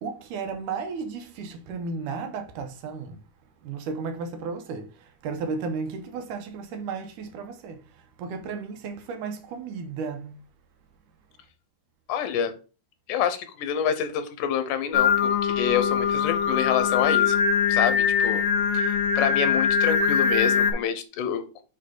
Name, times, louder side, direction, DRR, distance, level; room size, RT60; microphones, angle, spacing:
voice 1, 0.0-3.2 3.6-7.8 8.2-10.4, right 5 dB, 90° right, 2.5 m, -34 dB
voice 2, 12.1-12.6 13.1-17.4 17.7-18.4 18.7-21.6, left 8 dB, 85° left, 2.3 m, -27 dB
Singing, 14.9-20.7, left 6 dB, 70° left, 1.6 m, -22 dB
8.1 x 3.3 x 3.9 m
omnidirectional pair, 3.5 m